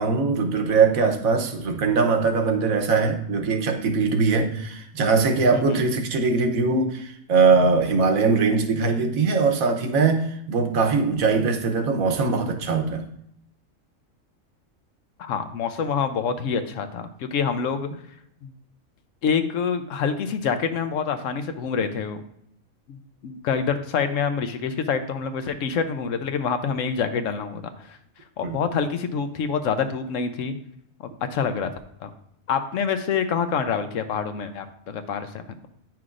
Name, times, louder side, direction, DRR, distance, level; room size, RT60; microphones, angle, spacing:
voice 1, 0.0-13.1 28.4-28.6, right 4 dB, 80° right, 5 dB, 1.3 m, -21 dB
voice 2, 5.5-5.9 15.2-17.9 18.4-18.5 19.2-22.2 22.9-28.0 28.4-30.5 31.0-31.7 32.0-32.1 32.5-35.4, left 6 dB, 70° left, 9 dB, 1.0 m, -26 dB
9.5 x 5.9 x 2.5 m, 0.73 s
omnidirectional pair, 1.4 m